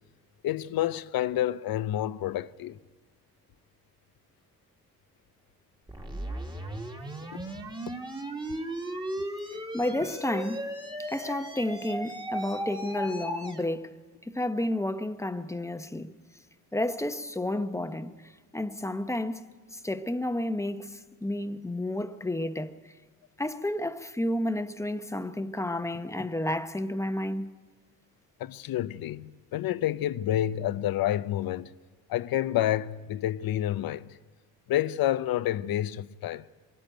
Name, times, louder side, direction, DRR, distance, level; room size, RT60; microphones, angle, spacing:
voice 1, 0.4-2.8 7.3-7.4 28.4-31.7 32.1-34.2 34.7-36.4, left 12 dB, 85° left, 0.6 m, -29 dB
sound 1, 5.9-13.7, right 1 dB, 15° right, 1.8 m, -36 dB
voice 2, 9.7-10.7 11.0-16.1 16.7-18.1 18.5-19.4 19.7-22.8 23.4-27.5, left 1 dB, 10° left, 0.8 m, -31 dB
22.5 x 13.5 x 9.1 m
cardioid pair, 90°, 35 cm